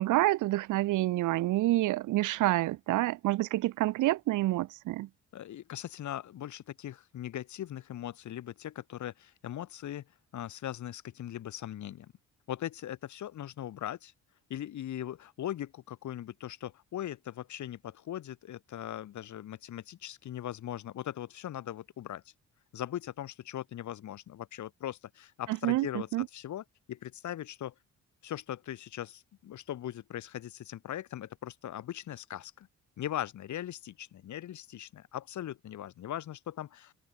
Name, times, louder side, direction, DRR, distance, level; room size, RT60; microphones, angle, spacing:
voice 1, 0.0-5.1 25.5-26.3, right 16 dB, 85° right, 1.1 m, -28 dB
voice 2, 5.3-10.0 10.3-12.1 12.5-14.1 14.5-22.2 22.7-27.7 28.2-32.7 33.0-36.9, left 11 dB, 70° left, 4.0 m, -40 dB
open air
cardioid pair, 90°, 30 cm